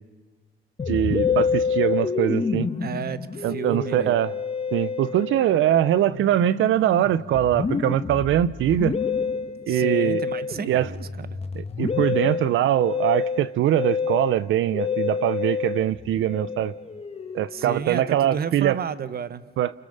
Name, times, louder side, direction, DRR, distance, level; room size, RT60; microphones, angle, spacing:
Musical instrument, 0.8-18.4, left 6 dB, 30° left, 1.7 m, -28 dB
voice 1, 0.9-2.7 3.4-4.3 4.7-9.0 9.6-10.2 10.7-10.9 11.5-16.7 17.3-18.8 19.6-19.7, right 12 dB, 80° right, 17 dB, 0.8 m, -22 dB
voice 2, 2.8-4.2 9.7-11.4 17.5-19.4, right 7 dB, 50° right, 15 dB, 1.1 m, -32 dB
29.0 x 28.0 x 6.7 m, 1.3 s
cardioid pair, 90°, 20 cm